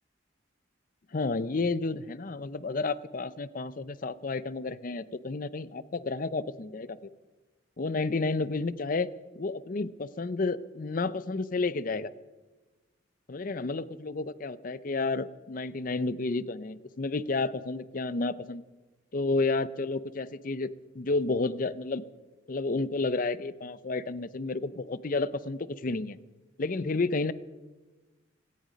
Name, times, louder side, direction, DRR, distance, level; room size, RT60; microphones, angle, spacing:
voice 1, 1.1-7.0 7.8-9.1 9.4-12.1 13.3-18.6 19.1-20.7 20.9-22.0 22.5-26.2 26.6-27.3, left 3 dB, 45° left, 17 dB, 0.5 m, -31 dB
17.0 x 14.0 x 5.2 m, 1.2 s
head